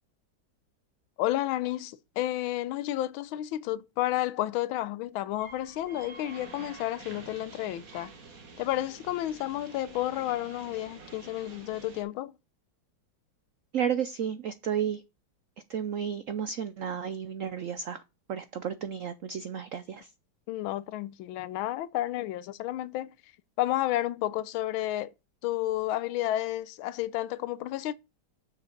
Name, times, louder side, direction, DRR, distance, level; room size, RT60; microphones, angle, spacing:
voice 1, 1.2-8.1 8.6-12.3 20.5-23.1 23.6-25.1 25.4-27.9, left 14 dB, 90° left, 1.4 m, -31 dB
sound 1, 5.3-12.0, right 4 dB, 45° right, 2.0 m, -48 dB
voice 2, 13.7-15.0 15.7-18.0 18.3-20.1, right 8 dB, 85° right, 0.7 m, -32 dB
7.2 x 6.6 x 3.9 m
omnidirectional pair, 2.2 m